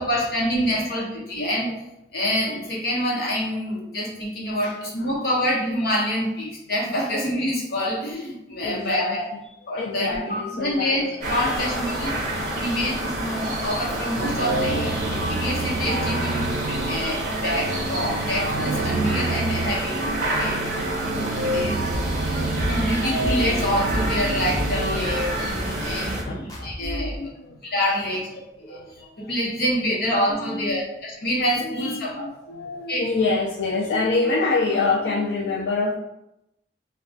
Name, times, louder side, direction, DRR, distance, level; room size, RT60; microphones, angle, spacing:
voice 1, 0.0-1.7 2.1-9.2 9.7-12.2 12.5-20.6 21.1-21.9 22.7-27.3 27.6-28.8 29.2-32.3 32.9-33.0, equal, 60° left, -4 dB, 0.9 m, -26 dB
voice 2, 4.6-5.1 8.5-9.2 9.8-11.1 11.5-12.7 18.9-19.4 19.7-19.8 20.6-21.2 22.0-22.8 25.7-26.0 26.3-27.6 28.1-28.2 28.6-29.8 30.0-30.9 31.6-35.9, left 3 dB, 80° left, -3 dB, 0.3 m, -28 dB
sound 1, 11.2-26.2, right 1 dB, 45° right, 0.7 m, -29 dB
sound 2, 14.1-25.2, right 2 dB, 70° right, 0.4 m, -28 dB
sound 3, 21.9-27.2, equal, 20° left, 0.5 m, -31 dB
2.3 x 2.2 x 3.7 m, 0.88 s
head